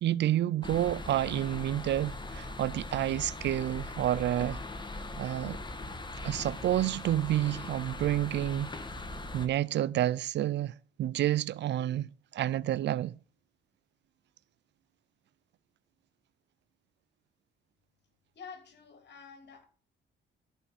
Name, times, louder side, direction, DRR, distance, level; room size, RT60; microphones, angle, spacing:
voice 1, 0.0-4.6 5.2-5.6 6.2-8.7 9.3-13.2, right 13 dB, 65° right, 0.5 m, -29 dB
sound 1, 0.6-9.5, left 2 dB, 20° left, 1.7 m, -40 dB
voice 2, 18.3-19.7, left 6 dB, 60° left, 3.2 m, -48 dB
14.5 x 5.6 x 5.0 m
cardioid pair, 90°, 20 cm